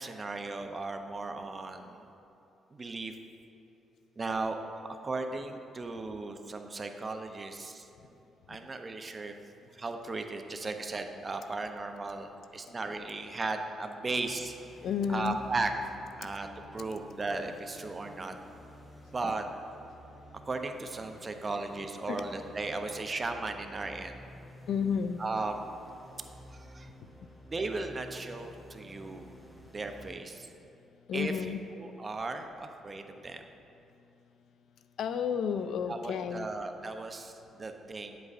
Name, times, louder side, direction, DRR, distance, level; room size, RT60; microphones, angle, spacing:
voice 1, 0.0-2.1 2.7-3.1 4.2-4.6 5.0-8.1 8.5-9.3 9.7-14.5 15.1-18.4 19.1-19.5 20.5-24.2 25.2-25.6 26.5-26.9 27.5-29.2 29.7-30.5 31.1-31.3 31.7-33.4 35.9-38.2, right 3 dB, 30° right, 6 dB, 0.6 m, -36 dB
sound 1, 14.0-30.1, equal, ahead, 0.8 m, -52 dB
voice 2, 14.8-15.4 19.2-19.3 22.1-22.2 24.7-25.2 31.1-31.6 35.0-36.5, left 7 dB, 70° left, 10 dB, 0.3 m, -31 dB
9.3 x 7.9 x 2.5 m, 2.8 s
cardioid pair, 90°, 0 cm